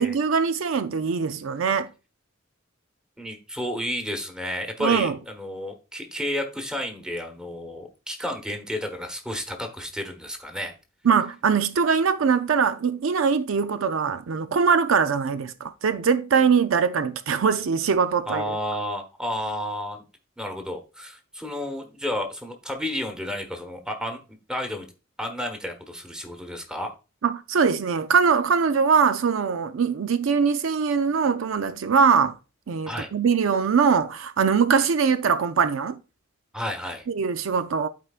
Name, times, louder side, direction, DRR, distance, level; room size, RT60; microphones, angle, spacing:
voice 1, 0.0-1.9 4.8-5.2 11.0-18.6 27.2-32.3 32.7-36.0 37.1-37.9, right 6 dB, 75° right, 0.5 m, -22 dB
voice 2, 3.2-10.7 18.3-20.0 20.4-24.2 24.5-24.9 25.2-26.9 32.9-33.1 36.5-37.1, left 1 dB, 5° right, 1.2 m, -31 dB
12.5 x 4.5 x 2.4 m
head